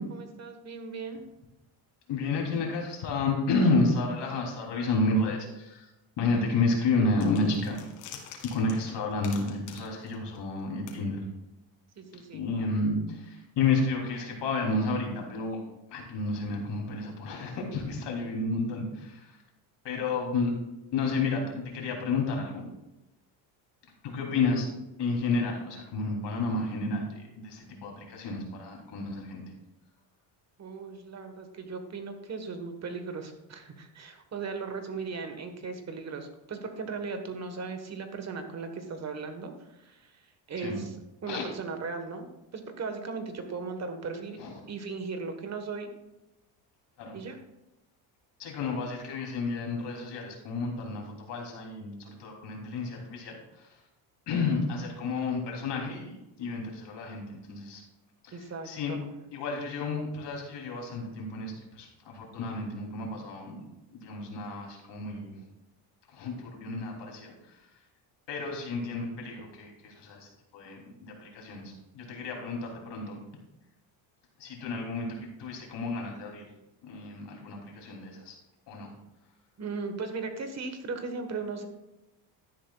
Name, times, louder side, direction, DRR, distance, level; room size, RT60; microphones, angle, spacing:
voice 1, 0.4-1.2 12.0-12.4 30.6-39.5 39.8-40.1 40.5-40.9 41.2-42.3 42.5-44.4 44.7-45.9 47.1-47.4 58.3-59.0 79.6-81.7, right 4 dB, 35° right, 6 dB, 1.4 m, -37 dB
voice 2, 2.1-5.9 6.2-7.8 8.5-11.2 12.3-15.6 15.9-19.4 19.8-20.5 20.9-22.7 24.0-24.7 25.0-29.4 40.6-40.8 41.3-41.5 44.4-44.6 47.0-47.2 48.4-53.8 54.3-57.8 58.2-59.0 59.3-63.6 63.9-65.4 66.1-67.8 68.3-73.2 74.4-76.5 76.8-78.4 78.7-78.9, left 3 dB, 55° left, 0 dB, 3.2 m, -31 dB
sound 1, 7.2-10.6 10.9-11.0, left 8 dB, 90° left, 2.1 m, -46 dB
12.5 x 10.0 x 2.4 m, 0.94 s
cardioid pair, 125°, 49 cm